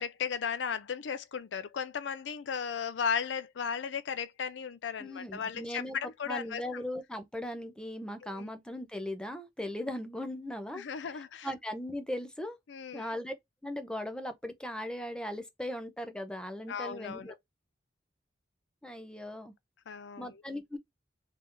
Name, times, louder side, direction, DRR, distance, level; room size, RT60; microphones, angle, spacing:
voice 1, 0.0-6.6 8.2-8.5 9.8-9.9 10.7-11.5 12.7-13.1 16.7-17.4 19.9-20.4, left 6 dB, 70° left, 0.4 m, -36 dB
voice 2, 5.0-10.8 11.4-12.6 12.9-13.3 13.6-17.3 18.8-19.5 20.2-20.8, left 1 dB, 5° left, 0.7 m, -38 dB
3.5 x 3.3 x 2.5 m
head